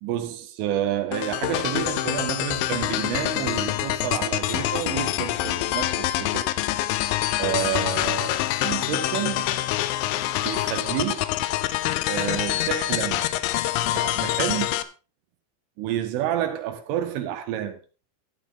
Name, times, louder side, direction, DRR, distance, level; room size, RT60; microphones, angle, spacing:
voice 1, 0.0-6.4 7.4-8.4 8.6-9.7 10.4-11.2 12.1-13.3 13.8-14.8 15.8-17.8, right 11 dB, 90° right, 4.0 m, -29 dB
sound 1, 1.1-14.8, left 15 dB, 85° left, 3.1 m, -26 dB
13.0 x 9.3 x 3.8 m
omnidirectional pair, 5.5 m